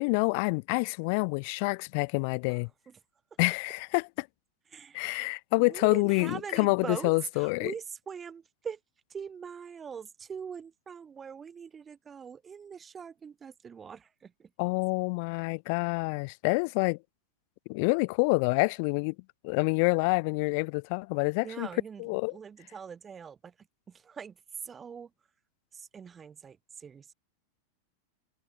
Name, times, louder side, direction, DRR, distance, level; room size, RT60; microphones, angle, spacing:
voice 1, 0.0-2.7 3.4-4.3 4.9-7.7 14.6-17.0 17.7-19.1 19.4-21.7 22.0-22.3, left 33 dB, 45° left, 0.5 m, -27 dB
voice 2, 2.5-3.0 4.7-8.8 9.1-14.5 21.4-25.1 25.7-27.1, right 6 dB, 20° right, 4.8 m, -43 dB
figure-of-eight pair, 90°, 0 cm